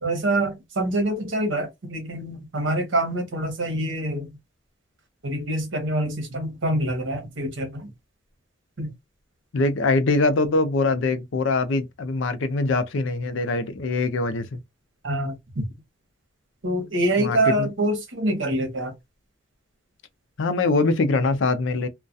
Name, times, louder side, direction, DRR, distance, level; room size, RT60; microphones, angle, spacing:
voice 1, 0.0-4.3 5.2-7.9 8.8-8.9 15.0-15.7 16.6-18.9, right 1 dB, 75° right, 0.9 m, -25 dB
voice 2, 9.5-14.6 17.2-17.7 20.4-21.9, left 3 dB, 75° left, 0.5 m, -23 dB
2.3 x 2.2 x 2.6 m
head